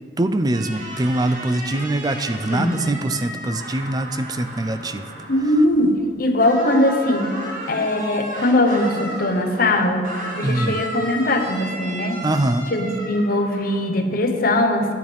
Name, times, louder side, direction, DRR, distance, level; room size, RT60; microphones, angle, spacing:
voice 1, 0.2-5.1 10.4-10.8 12.2-12.7, right 1 dB, 20° right, 10 dB, 0.4 m, -23 dB
sound 1, 0.5-6.1 6.4-13.8, equal, 40° right, 1.7 m, -34 dB
voice 2, 5.3-7.3 7.7-10.1 10.3-12.2 12.7-14.9, left 1 dB, 50° left, 4 dB, 1.0 m, -20 dB
10.5 x 9.5 x 5.1 m, 2.4 s
head